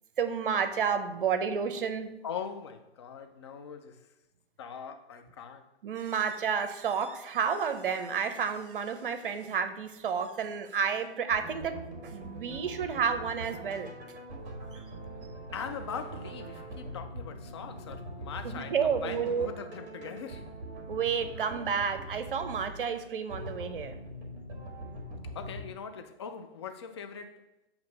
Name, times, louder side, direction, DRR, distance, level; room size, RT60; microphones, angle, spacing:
voice 1, 0.2-2.1 5.8-13.9 14.7-14.8 18.4-19.5 20.9-24.0, right 6 dB, 50° right, 0.7 m, -31 dB
voice 2, 2.2-4.1 4.6-5.7 15.5-20.5 25.2-27.5, left 7 dB, 25° left, 0.4 m, -41 dB
sound 1, 11.3-25.7, right 1 dB, 25° right, 1.5 m, -42 dB
7.4 x 2.9 x 5.2 m
figure-of-eight pair, 120°, 33 cm